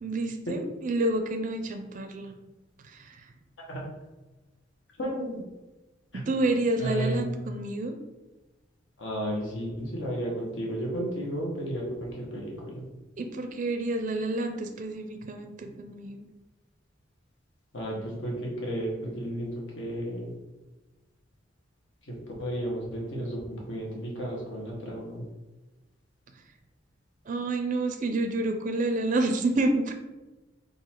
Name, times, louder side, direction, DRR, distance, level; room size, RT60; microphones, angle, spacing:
voice 1, 0.0-2.4 2.9-3.1 6.1-7.9 13.2-16.2 27.3-29.9, right 2 dB, 40° right, 6 dB, 0.4 m, -29 dB
voice 2, 5.0-5.4 6.8-7.3 9.0-12.9 17.7-20.3 22.1-25.2, right 1 dB, 75° left, -2 dB, 1.2 m, -33 dB
3.8 x 2.7 x 4.4 m, 1.1 s
head